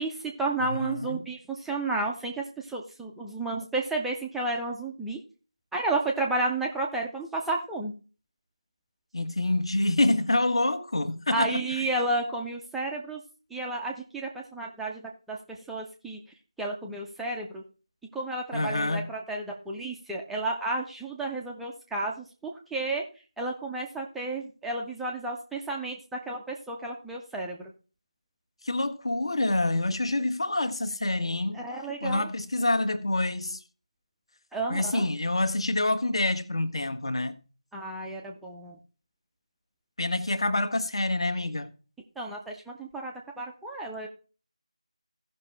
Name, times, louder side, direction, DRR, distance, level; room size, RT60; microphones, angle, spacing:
voice 1, 0.0-5.2 5.7-7.9 11.3-13.2 13.5-16.2 16.6-17.6 18.1-23.0 23.4-27.6 31.5-32.3 34.5-35.0 37.7-38.8 42.2-44.1, right 2 dB, ahead, 0.6 m, -32 dB
voice 2, 0.6-1.2 9.1-11.9 18.5-19.1 28.6-31.6 32.0-33.6 34.7-37.4 40.0-41.7, left 2 dB, 50° left, 1.4 m, -27 dB
16.5 x 5.9 x 3.3 m
figure-of-eight pair, 165°, 4 cm